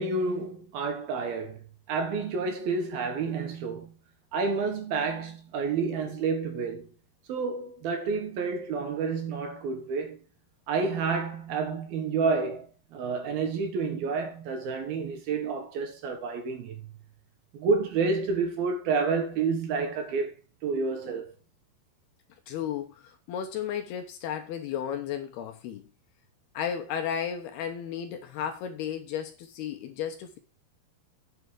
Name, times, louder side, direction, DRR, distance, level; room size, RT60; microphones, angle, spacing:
voice 1, 0.0-1.6 1.9-3.9 4.3-6.9 7.3-10.2 10.7-12.7 12.9-16.9 17.5-20.3 20.6-21.4, right 4 dB, 65° right, 3.0 m, -29 dB
voice 2, 22.5-25.8 26.5-30.4, left 8 dB, 75° left, 2.5 m, -34 dB
9.6 x 7.8 x 4.6 m
omnidirectional pair, 5.2 m